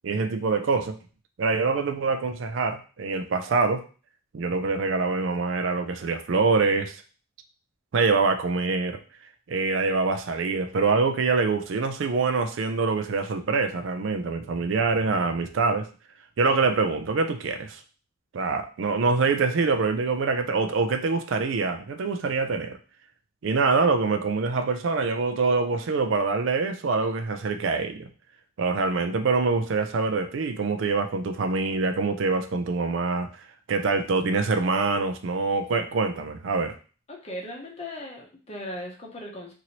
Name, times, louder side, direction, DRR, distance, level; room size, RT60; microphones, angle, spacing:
voice 1, 0.0-1.0 1.4-3.8 4.3-7.0 7.9-9.0 9.5-15.9 16.4-17.8 18.3-22.8 23.4-28.1 28.6-33.3 33.7-36.8, right 4 dB, 65° right, 7 dB, 0.4 m, -25 dB
voice 2, 37.1-39.5, left 1 dB, 30° left, -1 dB, 0.7 m, -38 dB
2.9 x 2.6 x 2.9 m, 0.37 s
head